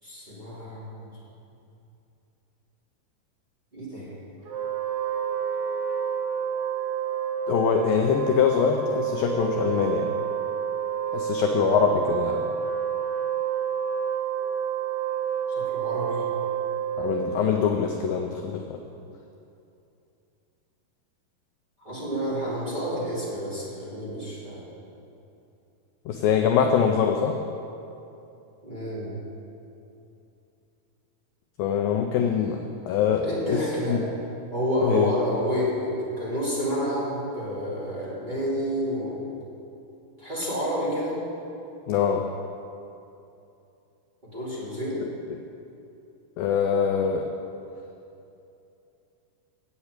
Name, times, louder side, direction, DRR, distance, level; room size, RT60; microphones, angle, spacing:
voice 1, 0.0-1.2 3.7-4.1 15.5-16.3 21.8-24.6 28.6-29.1 33.2-34.0 34.5-35.9 36.2-39.2 40.2-41.2 44.2-45.0, equal, 15° right, -9 dB, 1.9 m, -29 dB
Wind instrument woodwind instrument, 4.4-17.8, right 8 dB, 65° right, 3.0 m, -29 dB
voice 2, 7.5-10.1 11.1-12.5 17.0-18.8 26.1-27.4 31.6-33.6 33.9-34.0 34.8-35.1 41.9-42.3 46.4-47.2, left 7 dB, 85° left, 3 dB, 2.0 m, -24 dB
8.8 x 8.4 x 8.1 m, 2.7 s
omnidirectional pair, 4.8 m